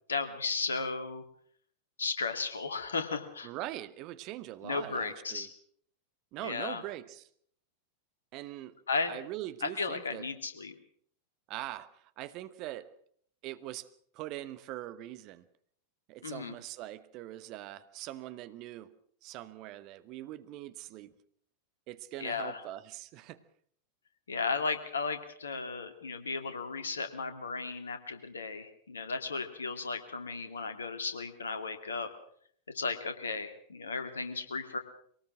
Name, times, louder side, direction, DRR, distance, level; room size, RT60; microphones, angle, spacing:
voice 1, 0.1-1.2 2.0-3.5 4.6-5.5 6.4-6.8 8.9-9.2 9.8-10.7 16.2-16.5 22.2-22.6 24.3-32.1 32.7-34.8, left 4 dB, 70° left, 8 dB, 2.3 m, -35 dB
voice 2, 3.4-5.5 6.3-7.3 8.3-8.8 9.1-10.3 11.5-12.9 13.4-13.9 14.1-15.5 16.1-18.9 19.2-21.1 21.9-23.4, right 15 dB, 40° right, 14 dB, 1.1 m, -42 dB
23.0 x 18.5 x 6.2 m, 0.62 s
figure-of-eight pair, 90°, 0 cm